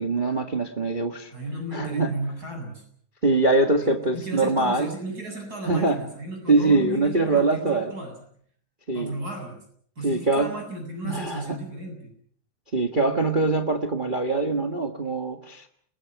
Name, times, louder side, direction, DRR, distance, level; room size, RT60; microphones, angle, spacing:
voice 1, 0.0-1.3 1.7-2.2 3.2-4.9 5.6-6.0 6.5-7.9 8.9-9.1 10.0-10.5 11.0-11.6 12.7-15.7, right 3 dB, 50° right, 4 dB, 0.6 m, -23 dB
voice 2, 1.3-2.9 3.8-8.2 8.9-9.7 10.0-12.1, right 1 dB, 25° right, 3 dB, 8.0 m, -35 dB
29.5 x 21.0 x 6.1 m, 0.62 s
omnidirectional pair, 3.9 m